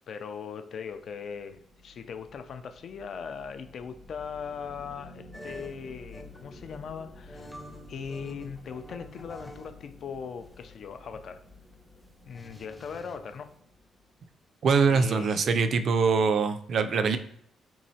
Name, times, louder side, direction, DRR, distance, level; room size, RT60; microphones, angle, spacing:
voice 1, 0.1-7.6 7.9-11.4 12.2-13.5 14.9-15.5 16.8-17.2, left 6 dB, 60° left, 9 dB, 0.4 m, -39 dB
sound 1, 1.2-14.4, left 2 dB, 30° left, 0.7 m, -52 dB
sound 2, 5.3-9.7 10.1-13.4, equal, ahead, 0.5 m, -48 dB
voice 2, 14.6-17.2, right 5 dB, 60° right, 10 dB, 0.3 m, -23 dB
3.6 x 3.0 x 2.7 m, 0.68 s
cardioid pair, 85°, 0 cm